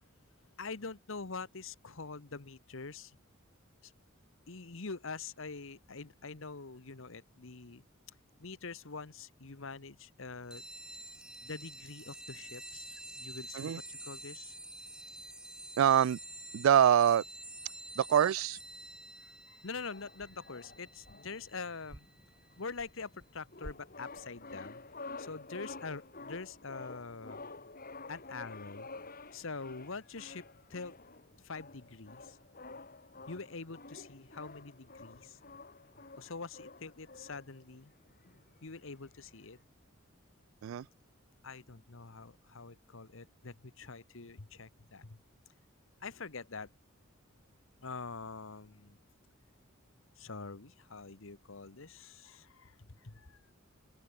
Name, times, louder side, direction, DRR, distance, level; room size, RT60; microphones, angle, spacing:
voice 1, 0.6-3.2 3.8-3.9 4.5-7.8 8.4-10.6 11.4-14.5 19.2-22.1 22.6-24.8 25.2-27.5 28.1-28.9 29.2-30.9 31.4-32.4 33.3-35.4 36.2-37.9 38.6-39.6 41.4-45.2 46.0-46.7 47.8-49.0 50.2-53.4, left 4 dB, 70° left, 1.3 m, -45 dB
sound 1, 10.5-22.6, right 1 dB, 5° right, 0.7 m, -49 dB
voice 2, 15.8-16.2 16.5-17.2 18.0-18.6 40.6-40.9, right 9 dB, 70° right, 0.3 m, -25 dB
sound 2, 19.5-19.8 20.1-21.5 21.9-23.3 23.6-24.5, equal, 20° right, 2.2 m, -54 dB
sound 3, 19.8-39.6, left 3 dB, 45° left, 5.2 m, -50 dB
open air
head